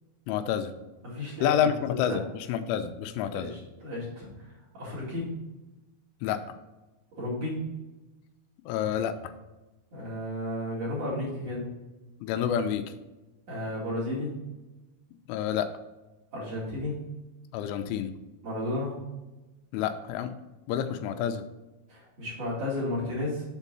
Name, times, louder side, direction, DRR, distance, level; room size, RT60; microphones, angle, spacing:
voice 1, 0.3-0.7 1.4-2.2 2.5-3.6 6.2-6.4 8.7-9.2 12.2-12.8 15.3-15.7 17.5-18.1 19.7-20.3 20.7-21.4, left 9 dB, 85° left, 9 dB, 3.1 m, -28 dB
voice 2, 1.0-2.2 3.3-5.3 7.1-7.6 9.9-11.7 13.5-14.3 16.3-16.9 18.4-19.0 21.9-23.4, left 1 dB, 40° right, -8 dB, 2.9 m, -33 dB
7.2 x 4.5 x 5.4 m, 1.1 s
omnidirectional pair, 5.5 m